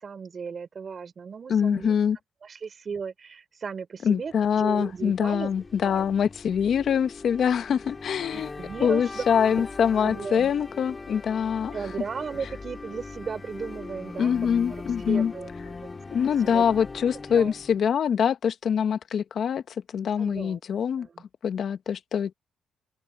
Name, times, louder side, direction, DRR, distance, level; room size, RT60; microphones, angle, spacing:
voice 1, 0.0-1.9 2.4-5.5 5.8-6.0 8.3-9.2 9.6-9.7 10.0-10.5 11.7-14.3 14.7-16.7 17.3-17.5 20.2-20.6 21.0-21.2, right 6 dB, 45° right, 4.1 m, -36 dB
voice 2, 1.5-2.2 4.0-8.5 8.8-11.8 14.2-15.3 16.1-21.1 21.4-22.3, left 7 dB, 60° left, 1.4 m, -24 dB
sound 1, 4.9-17.8, left 3 dB, 25° left, 4.8 m, -40 dB
open air
cardioid pair, 90°, 0 cm